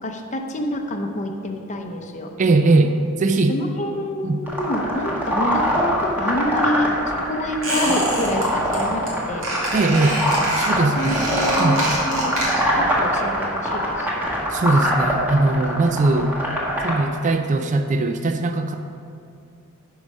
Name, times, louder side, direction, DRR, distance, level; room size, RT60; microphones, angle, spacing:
voice 1, 0.0-2.3 3.5-9.5 10.9-14.1, left 1 dB, 35° left, 3 dB, 0.7 m, -27 dB
voice 2, 2.4-3.5 4.2-4.4 9.7-10.2 10.5-11.3 11.6-11.8 14.5-16.3 16.8-18.7, right 2 dB, 35° right, 6 dB, 0.4 m, -20 dB
sound 1, 4.5-17.0, equal, 10° right, 1.4 m, -23 dB
Squeak, 7.6-8.4 8.7-9.1 9.4-12.8 13.1-13.2, right 1 dB, 65° right, 2.3 m, -26 dB
11.5 x 4.8 x 5.4 m, 2.4 s
head